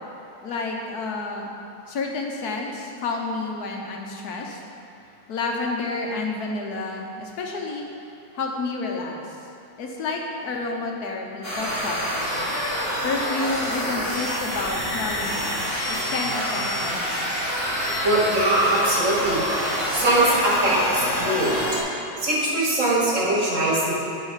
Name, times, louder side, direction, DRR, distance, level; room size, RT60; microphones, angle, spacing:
voice 1, 0.4-1.5 1.9-4.6 5.3-7.9 8.3-9.2 9.8-12.4 13.0-15.6 15.9-17.5, left 3 dB, 80° left, 0 dB, 1.5 m, -30 dB
sound 1, 11.4-21.8, equal, 40° left, 2.1 m, -27 dB
voice 2, 18.0-21.6 22.2-23.9, right 1 dB, 55° right, -5 dB, 1.9 m, -22 dB
11.5 x 4.1 x 5.7 m, 2.9 s
omnidirectional pair, 1.6 m